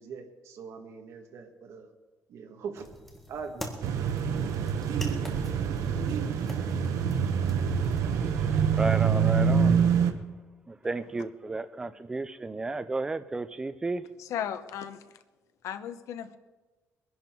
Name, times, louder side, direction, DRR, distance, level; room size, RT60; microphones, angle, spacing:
voice 1, 0.0-1.9 2.3-2.9 3.3-4.0, right 5 dB, 65° right, 3 dB, 1.8 m, -42 dB
sound 1, 2.8-8.0, equal, 5° left, 1.8 m, -45 dB
sound 2, 3.8-10.1, right 7 dB, 85° right, 1.1 m, -26 dB
voice 2, 8.2-9.8 10.7-14.0, right 3 dB, 15° right, 12 dB, 0.5 m, -33 dB
voice 3, 14.2-15.0 15.6-16.4, left 9 dB, 80° left, 11 dB, 1.0 m, -35 dB
22.5 x 11.0 x 4.6 m, 1.2 s
cardioid pair, 160°, 5 cm